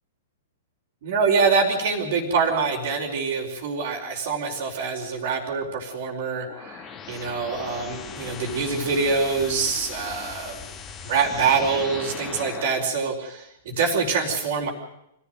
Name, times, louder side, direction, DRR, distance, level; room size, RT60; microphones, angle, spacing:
voice 1, 1.0-10.6 11.0-14.7, right 5 dB, 50° right, -5 dB, 4.3 m, -25 dB
sound 1, 6.5-12.9, left 6 dB, 25° left, 2.4 m, -39 dB
25.5 x 16.0 x 7.8 m, 0.81 s
figure-of-eight pair, 105°, 0 cm